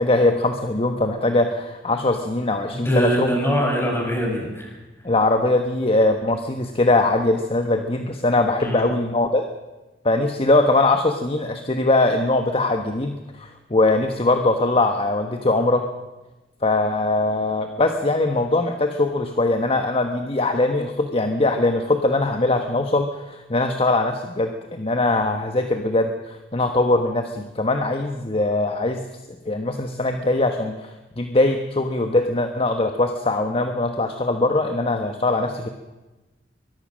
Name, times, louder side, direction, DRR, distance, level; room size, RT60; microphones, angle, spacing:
voice 1, 0.0-3.3 5.0-9.5 10.0-15.8 16.6-29.0 29.5-35.7, left 2 dB, 35° left, 6 dB, 1.3 m, -21 dB
voice 2, 2.7-4.8 8.6-8.9, equal, 15° left, 0 dB, 7.1 m, -23 dB
24.0 x 21.5 x 6.4 m, 1.1 s
head